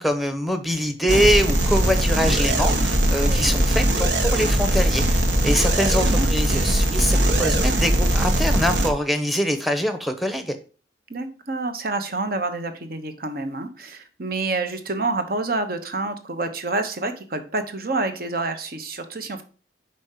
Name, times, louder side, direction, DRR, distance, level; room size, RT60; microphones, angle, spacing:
voice 1, 0.0-10.6, equal, ahead, 8 dB, 0.8 m, -24 dB
sound 1, 1.1-8.9, right 1 dB, 75° right, 1.4 m, -20 dB
voice 2, 11.1-19.4, right 3 dB, 55° right, 8 dB, 1.1 m, -28 dB
5.6 x 5.2 x 6.6 m, 0.38 s
head